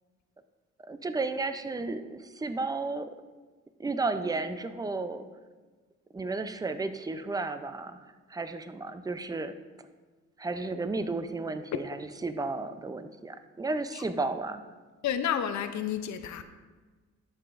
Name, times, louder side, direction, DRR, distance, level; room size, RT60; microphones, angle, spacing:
voice 1, 0.9-3.1 3.8-5.3 6.1-8.0 8.3-9.6 10.4-14.6, right 3 dB, 15° right, 10 dB, 0.5 m, -33 dB
voice 2, 15.0-16.4, left 9 dB, 70° left, 9 dB, 0.6 m, -30 dB
11.0 x 6.8 x 2.5 m, 1.3 s
cardioid pair, 90°, 30 cm